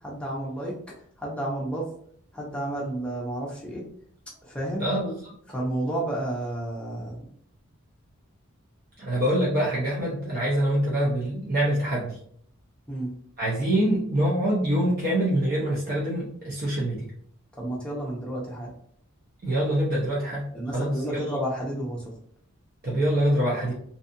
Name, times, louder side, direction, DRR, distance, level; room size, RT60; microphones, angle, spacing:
voice 1, 0.0-0.8 1.2-1.9 2.3-3.8 4.4-4.9 5.5-7.3 12.9-13.1 17.6-18.7 20.5-22.0, right 1 dB, 5° left, -5 dB, 0.6 m, -31 dB
voice 2, 4.8-5.2 9.0-12.2 13.4-17.1 19.4-20.5 20.7-21.2 22.8-23.7, right 1 dB, 40° right, -6 dB, 0.6 m, -25 dB
2.6 x 2.3 x 2.6 m, 0.63 s
head